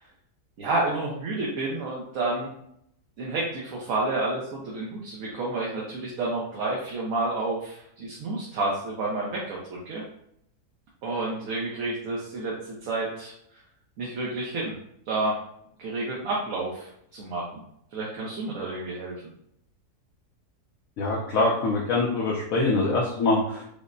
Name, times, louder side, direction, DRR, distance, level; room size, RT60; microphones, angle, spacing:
voice 1, 0.6-2.5 3.2-10.0 11.0-13.3 14.0-14.7 15.1-15.3 15.8-17.6 17.9-19.1, right 2 dB, 65° right, -4 dB, 1.1 m, -30 dB
voice 2, 21.0-23.6, left 2 dB, 70° left, -3 dB, 0.9 m, -24 dB
5.2 x 2.1 x 2.5 m, 0.72 s
omnidirectional pair, 1.7 m